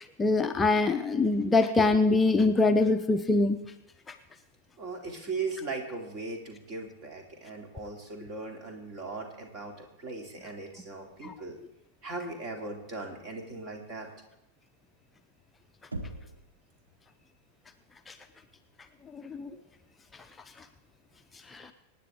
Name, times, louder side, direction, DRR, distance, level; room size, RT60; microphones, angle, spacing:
voice 1, 0.2-3.6 4.1-4.2 11.2-11.3 18.1-18.2 19.1-19.5 21.5-21.7, left 3 dB, 15° left, 7 dB, 0.6 m, -24 dB
voice 2, 4.8-11.6 12.0-14.1 19.5-19.6, right 3 dB, 35° right, 2 dB, 2.7 m, -38 dB
Knock, 15.9-16.6, right 1 dB, 75° right, 1.2 m, -38 dB
24.5 x 9.6 x 3.6 m, 0.90 s
figure-of-eight pair, 90°, 0 cm